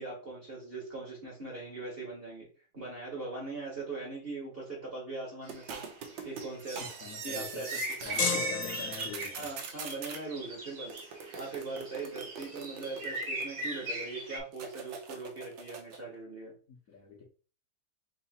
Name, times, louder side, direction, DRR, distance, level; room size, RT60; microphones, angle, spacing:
voice 1, 0.0-2.5 2.7-5.8 6.2-6.8 7.2-7.8 8.1-8.4 9.3-16.5, right 3 dB, 30° right, -3 dB, 1.3 m, -41 dB
sound 1, 5.5-5.8 6.0-14.4, right 2 dB, 50° right, 1.5 m, -39 dB
sound 2, 5.5-8.3 8.6-10.2 10.9-13.9 14.5-16.0, right 6 dB, 70° right, 1.3 m, -43 dB
voice 2, 6.8-7.6 8.0-9.5 16.7-17.2, left 5 dB, 50° left, -4 dB, 1.2 m, -45 dB
sound 3, 8.2-9.5, left 6 dB, 85° left, 1.6 m, -33 dB
3.9 x 2.8 x 4.1 m, 0.37 s
omnidirectional pair, 2.3 m